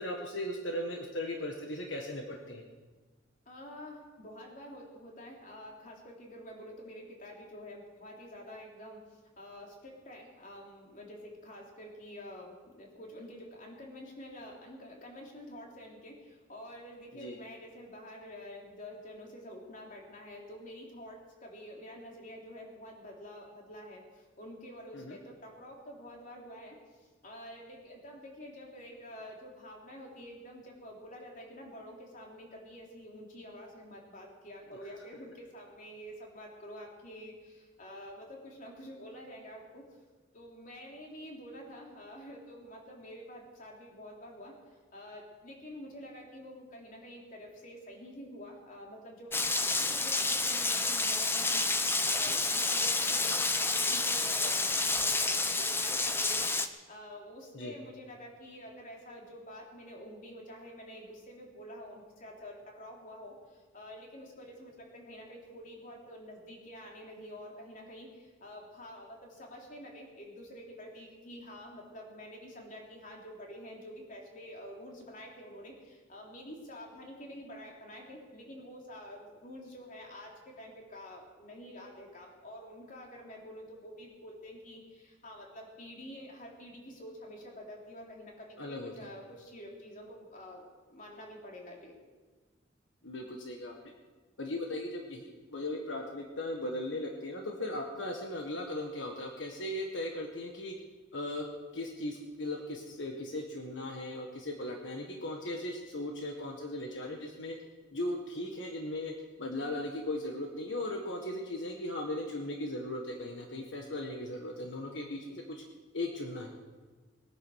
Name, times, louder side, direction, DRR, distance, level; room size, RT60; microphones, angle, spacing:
voice 1, 0.0-2.6 17.1-17.4 24.9-25.2 57.5-57.7 88.6-88.9 93.0-93.7 94.4-100.7 101.1-101.4 101.7-107.5 107.9-109.1 109.4-115.6 115.9-116.5, left 1 dB, 80° left, 1 dB, 1.6 m, -37 dB
voice 2, 3.5-39.8 40.3-44.5 44.9-90.6 90.9-91.9, equal, 45° left, -1 dB, 3.4 m, -48 dB
Rain, 49.3-56.7, left 3 dB, 10° left, 0.7 m, -29 dB
21.0 x 9.8 x 6.4 m, 1.3 s
head